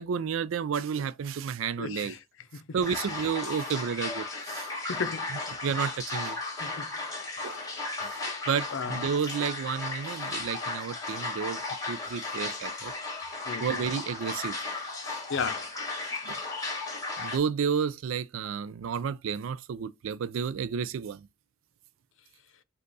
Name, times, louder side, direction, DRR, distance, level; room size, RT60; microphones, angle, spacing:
voice 1, 0.0-2.2 2.7-4.7 5.3-6.4 7.4-7.6 8.0-11.6 11.9-12.9 13.6-14.6 16.2-16.4 17.2-21.3, right 7 dB, 70° right, 0.4 m, -31 dB
voice 2, 1.8-2.2 2.5-2.6 4.9-5.3 6.6-6.9 7.4-7.5 8.7-9.0 13.5-13.8 15.3-15.7, left 5 dB, 70° left, 0.6 m, -34 dB
sound 1, 2.8-17.4, left 3 dB, 20° left, 1.8 m, -35 dB
5.3 x 2.4 x 3.9 m
head